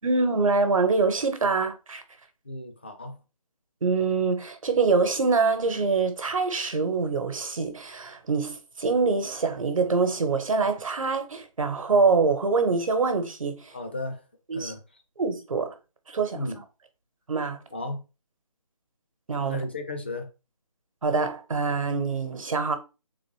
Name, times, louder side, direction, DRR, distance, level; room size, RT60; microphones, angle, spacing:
voice 1, 0.0-2.0 3.8-13.7 14.5-14.7 15.2-15.7 16.1-16.4 17.3-17.6 19.3-19.6 21.0-22.8, right 4 dB, 65° right, 1.0 m, -25 dB
voice 2, 2.5-3.2 13.7-14.2 14.5-14.8 16.3-16.6 17.7-18.0 19.4-20.3, left 2 dB, 20° left, 0.4 m, -34 dB
3.8 x 3.1 x 3.1 m
figure-of-eight pair, 165°, 18 cm